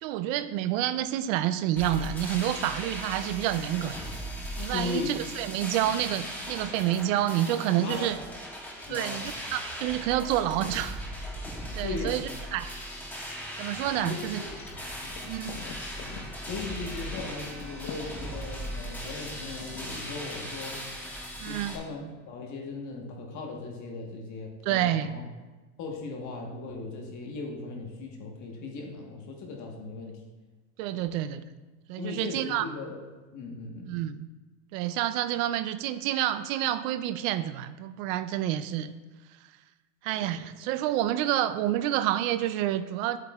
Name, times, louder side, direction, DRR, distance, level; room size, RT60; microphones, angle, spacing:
voice 1, 0.0-4.1 4.6-8.2 8.9-11.0 11.8-12.7 13.6-14.4 15.3-15.6 21.4-21.8 24.6-25.2 30.8-31.4 31.9-32.7 33.9-34.3 34.7-38.9 40.0-43.2, right 12 dB, 65° right, 13 dB, 0.5 m, -28 dB
sound 1, 1.8-21.8, equal, 5° left, 1.4 m, -38 dB
voice 2, 4.7-5.2 5.9-6.0 7.7-8.1 8.9-9.2 11.8-12.2 14.0-14.5 16.5-20.8 21.4-25.2 25.8-30.2 30.9-31.1 32.0-32.9 33.3-33.9 40.2-40.3, left 3 dB, 40° left, 0 dB, 1.3 m, -38 dB
Wind chime / Wind, 14.5-20.8, left 5 dB, 60° left, 1.1 m, -46 dB
10.5 x 8.1 x 2.4 m, 1.2 s
supercardioid pair, 140°, 44 cm